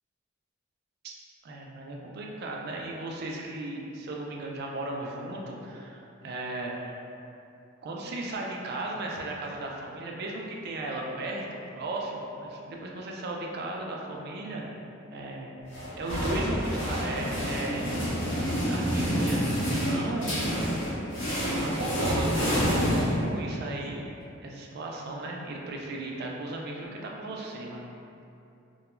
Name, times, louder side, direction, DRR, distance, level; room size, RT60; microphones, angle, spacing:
voice 1, 1.4-7.0 7.8-14.6 15.1-15.6 16.0-17.9 18.3-18.4 18.7-20.5 21.4-24.1 24.4-27.8, right 2 dB, 50° right, -1 dB, 0.3 m, -36 dB
sound 1, 15.7-23.6, equal, 65° left, 0.8 m, -28 dB
2.3 x 2.1 x 2.9 m, 2.7 s
head